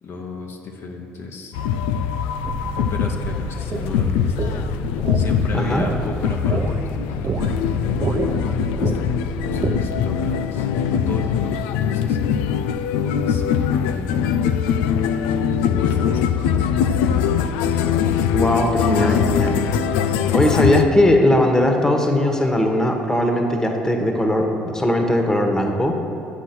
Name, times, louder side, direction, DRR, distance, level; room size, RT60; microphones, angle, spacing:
voice 1, 0.0-1.5 2.8-4.7 5.1-12.2 12.9-14.3 15.6-16.7, left 4 dB, 60° left, 1 dB, 1.0 m, -34 dB
sound 1, 1.5-20.8, left 7 dB, 80° left, 0.3 m, -22 dB
sound 2, 2.4-10.1, right 4 dB, 45° right, 0.7 m, -29 dB
voice 2, 18.3-19.6 20.3-26.0, left 1 dB, 10° left, 3 dB, 1.4 m, -19 dB
8.2 x 5.9 x 5.9 m, 2.7 s
hypercardioid pair, 60°, 5 cm